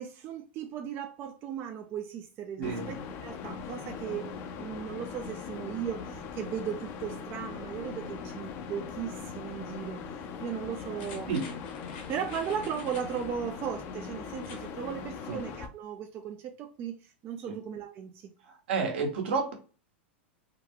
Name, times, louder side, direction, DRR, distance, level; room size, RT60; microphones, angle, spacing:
voice 1, 0.0-10.0 10.4-11.3 12.1-18.3, right 8 dB, 40° right, 4 dB, 0.5 m, -37 dB
sound 1, 2.6-15.7, left 6 dB, 45° left, 0.6 m, -40 dB
voice 2, 2.6-2.9 11.3-11.4 15.3-15.4 17.5-17.6 18.7-19.5, right 4 dB, 75° right, 2 dB, 1.4 m, -30 dB
sound 2, 11.0-13.3 14.3-14.7 15.1-15.2, left 5 dB, 60° left, 1.2 m, -49 dB
3.6 x 2.3 x 3.0 m, 0.37 s
hypercardioid pair, 115°, 6 cm